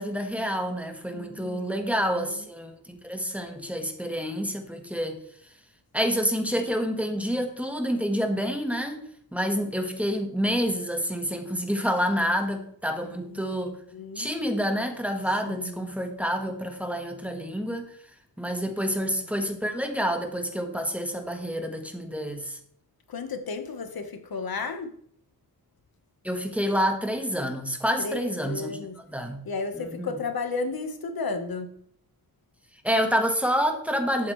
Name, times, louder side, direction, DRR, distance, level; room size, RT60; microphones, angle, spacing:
voice 1, 0.0-5.2 5.9-13.8 14.1-18.0 18.4-22.6 26.2-28.8 29.1-29.4 29.7-30.2 32.8-34.3, equal, 5° right, 4 dB, 1.4 m, -28 dB
voice 2, 1.1-2.4 13.3-13.4 13.9-14.3 15.5-15.9 19.0-19.2 23.1-24.9 28.0-29.0 29.4-31.7, left 4 dB, 75° left, 7 dB, 1.3 m, -33 dB
12.0 x 8.5 x 3.2 m, 0.66 s
wide cardioid pair, 120°, 36 cm